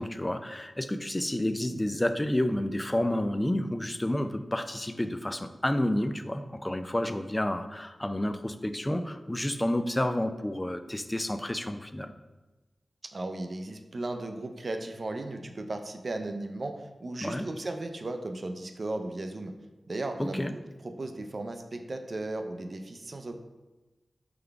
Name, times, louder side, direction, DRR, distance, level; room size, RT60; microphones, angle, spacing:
voice 1, 0.0-12.1 17.2-17.5 20.2-20.5, left 1 dB, 20° left, 9 dB, 0.3 m, -30 dB
voice 2, 13.1-19.5 19.9-20.5 20.8-23.3, right 2 dB, 55° right, 6 dB, 0.4 m, -36 dB
3.8 x 3.3 x 3.4 m, 1.1 s
cardioid pair, 50°, 0 cm